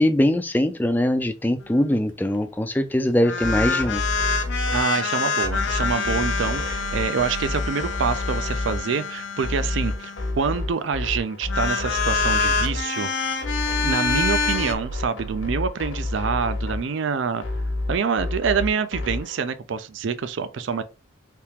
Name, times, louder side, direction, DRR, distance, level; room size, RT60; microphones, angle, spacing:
voice 1, 0.0-4.0, left 1 dB, 10° left, 0.3 m, -21 dB
sound 1, 3.2-10.6 11.4-14.7, left 4 dB, 60° left, 0.5 m, -26 dB
sound 2, 3.4-19.4, left 2 dB, 80° left, 1.0 m, -30 dB
voice 2, 4.7-13.3 13.8-17.4 17.9-20.8, right 5 dB, 65° right, 0.4 m, -26 dB
3.5 x 2.8 x 2.9 m
head